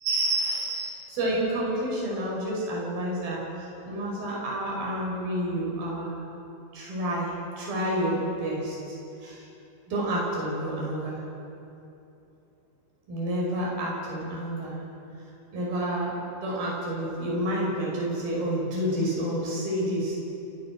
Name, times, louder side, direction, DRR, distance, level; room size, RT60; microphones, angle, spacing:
voice 1, 0.1-6.2 6.7-9.5 9.9-11.2 13.1-14.8 15.5-20.2, right 1 dB, 50° right, -3 dB, 7.4 m, -29 dB
28.5 x 19.5 x 6.2 m, 2.8 s
omnidirectional pair, 5.5 m